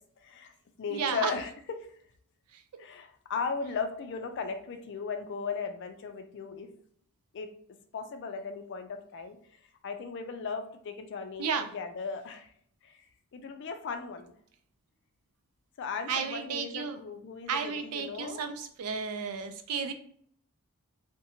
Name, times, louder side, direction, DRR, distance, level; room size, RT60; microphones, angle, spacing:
voice 1, 0.2-0.5 0.8-1.5 2.8-6.7 7.3-7.5 7.9-9.4 9.8-12.5 12.8-13.0 13.3-14.3 15.8-18.4, left 5 dB, 55° left, 7 dB, 0.3 m, -37 dB
voice 2, 0.9-1.3 2.5-2.6 11.4-11.7 16.1-17.0 17.5-19.9, right 6 dB, 80° right, 8 dB, 0.4 m, -33 dB
2.7 x 2.1 x 2.7 m, 0.62 s
head